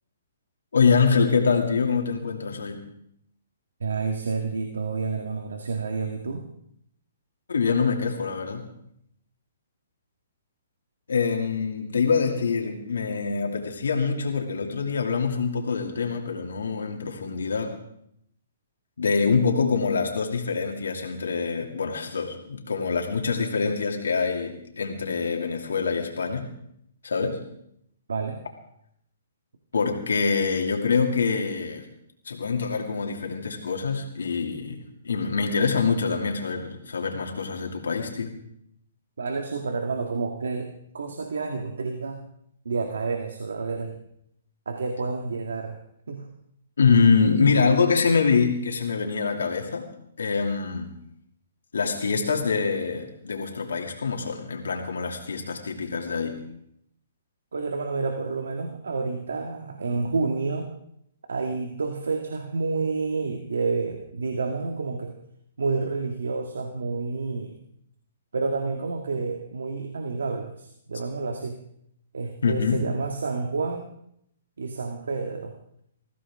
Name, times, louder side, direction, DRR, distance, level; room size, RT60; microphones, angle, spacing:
voice 1, 0.7-2.8 7.5-8.6 11.1-17.7 19.0-26.5 27.0-27.4 29.7-31.9 32.3-38.3 46.8-49.9 50.2-50.9 51.7-56.4 72.4-72.8, left 5 dB, 85° left, 1 dB, 2.5 m, -25 dB
voice 2, 3.8-6.4 28.1-28.4 39.2-42.2 42.7-44.0 44.7-45.8 46.1-46.3 57.5-60.7 61.3-65.1 65.6-67.5 68.3-71.6 72.1-73.9 74.6-75.5, right 4 dB, 85° right, 3 dB, 1.8 m, -29 dB
21.0 x 15.0 x 3.7 m, 0.74 s
hypercardioid pair, 145°, 0 cm